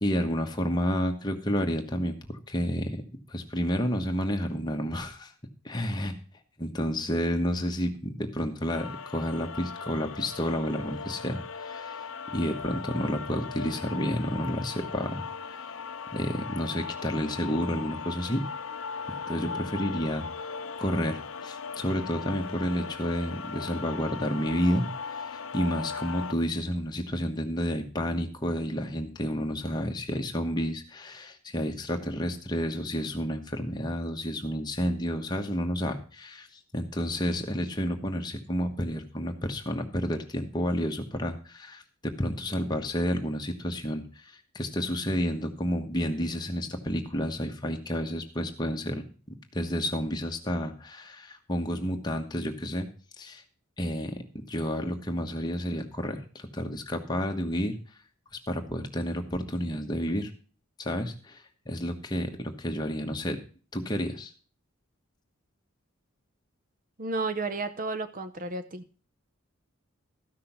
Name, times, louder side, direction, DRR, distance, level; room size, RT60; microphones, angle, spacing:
voice 1, 0.0-2.2 2.5-3.0 3.3-5.3 5.6-6.2 6.6-12.0 12.3-15.2 16.1-18.4 19.3-36.5 36.7-49.0 49.5-52.9 53.2-53.4 53.8-57.8 58.5-60.3 60.8-63.4 63.7-64.3, equal, 20° left, 3 dB, 1.2 m, -30 dB
sound 1, 8.7-26.3, left 5 dB, 70° left, 0.6 m, -38 dB
voice 2, 67.0-68.8, right 3 dB, 40° right, 11 dB, 0.7 m, -32 dB
13.0 x 6.2 x 5.9 m, 0.38 s
head